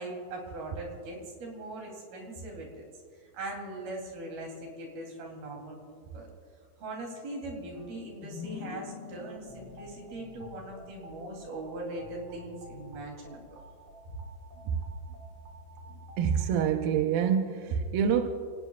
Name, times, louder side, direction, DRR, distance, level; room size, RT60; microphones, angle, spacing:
voice 1, 0.0-2.8 3.2-6.3 6.8-13.4, right 2 dB, 60° right, 0 dB, 4.8 m, -40 dB
sound 1, 7.7-11.4, left 7 dB, 70° left, 2.3 m, -45 dB
sound 2, 9.3-16.6, equal, 40° right, 3.5 m, -50 dB
voice 2, 16.2-18.3, right 8 dB, 75° right, 4 dB, 2.3 m, -26 dB
29.0 x 18.5 x 2.4 m, 2.2 s
omnidirectional pair, 4.9 m